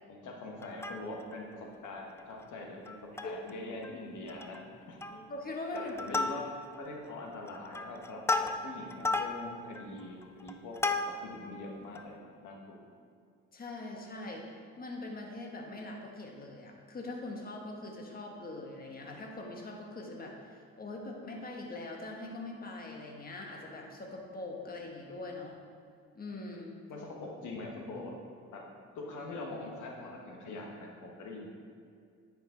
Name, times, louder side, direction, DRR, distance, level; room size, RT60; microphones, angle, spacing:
voice 1, 0.1-5.2 5.7-6.4 6.8-10.9 11.2-12.8 26.9-28.1 28.5-28.6 29.0-31.5, left 2 dB, 75° left, 0 dB, 1.5 m, -43 dB
Plucked string instrument, 0.6-1.4 1.8-1.9 2.2-2.4 2.9-3.5 3.8-3.9 4.3-4.7 5.0-5.4 5.8-6.8 7.3-11.4 12.0-12.1, left 3 dB, 10° left, 0.3 m, -34 dB
voice 2, 5.3-6.2 10.2-10.3 13.5-14.5 14.8-25.6 26.1-26.7, left 2 dB, 30° left, 0 dB, 1.3 m, -42 dB
10.0 x 5.4 x 3.9 m, 2.3 s
cardioid pair, 90°, 30 cm